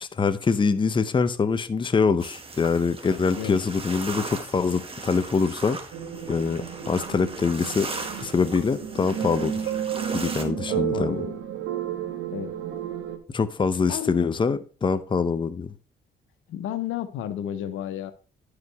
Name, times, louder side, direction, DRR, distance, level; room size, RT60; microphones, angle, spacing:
voice 1, 0.0-5.8 6.3-7.9 8.2-9.7 10.1-11.2 13.3-15.7, left 5 dB, 25° left, 0.6 m, -24 dB
sound 1, 2.2-10.4, right 3 dB, 30° right, 1.4 m, -38 dB
voice 2, 3.4-3.7 10.7-11.3 12.3-12.6 13.9-14.2 16.5-18.1, left 10 dB, 85° left, 0.8 m, -32 dB
sound 2, 5.9-13.2, right 10 dB, 85° right, 1.3 m, -32 dB
10.5 x 4.9 x 3.4 m
cardioid pair, 90°, 20 cm